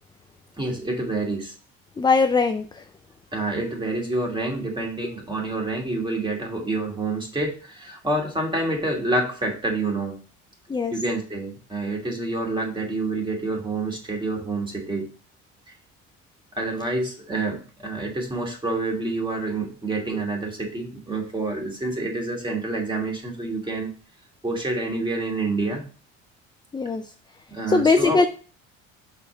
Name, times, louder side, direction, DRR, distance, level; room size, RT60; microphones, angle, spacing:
voice 1, 0.6-1.5 3.3-10.2 10.9-15.1 16.6-23.9 24.4-25.8 27.5-28.2, right 2 dB, 15° right, 0 dB, 2.5 m, -28 dB
voice 2, 2.0-2.8 10.7-10.9 26.7-27.0 27.7-28.3, left 4 dB, 15° left, 7 dB, 0.4 m, -20 dB
5.9 x 4.3 x 5.1 m, 0.38 s
cardioid pair, 95°, 30 cm